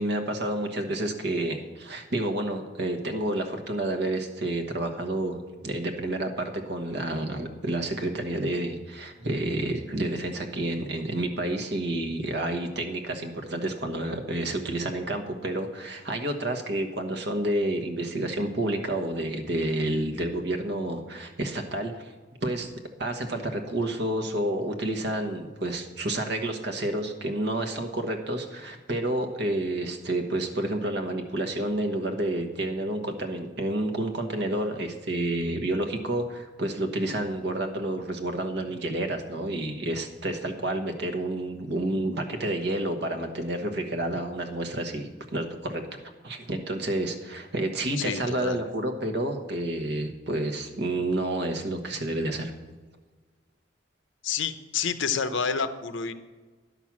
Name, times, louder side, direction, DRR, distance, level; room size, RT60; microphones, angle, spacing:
voice 1, 0.0-22.1 22.4-22.7 23.0-46.0 46.2-52.5, right 1 dB, 60° right, 5 dB, 1.3 m, -29 dB
voice 2, 48.0-48.6 54.2-56.1, left 6 dB, 75° left, 11 dB, 0.7 m, -29 dB
11.0 x 6.1 x 7.3 m, 1.4 s
head